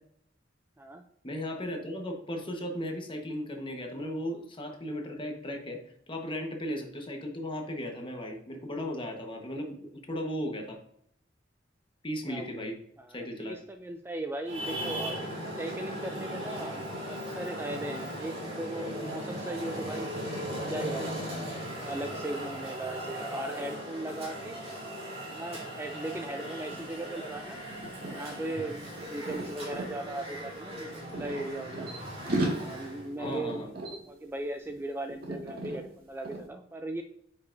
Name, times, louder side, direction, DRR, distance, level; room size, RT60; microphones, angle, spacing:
voice 1, 1.2-5.8 6.1-10.8 12.0-12.8 13.1-13.6 33.2-33.7, equal, 25° left, 2 dB, 1.3 m, -36 dB
voice 2, 12.3-12.6 13.0-20.1 20.6-21.4 21.8-24.6 25.3-27.6 28.1-32.1 32.6-37.0, right 2 dB, 10° right, 5 dB, 0.4 m, -38 dB
Traffic noise roadway noise, 14.4-33.1, equal, 35° right, 2.7 m, -38 dB
sound 1, 26.7-26.8 27.1-29.9 30.7-32.0 32.3-34.8 35.1-35.8 36.2-36.5, right 1 dB, 50° right, 1.9 m, -36 dB
9.0 x 5.6 x 2.7 m, 0.70 s
head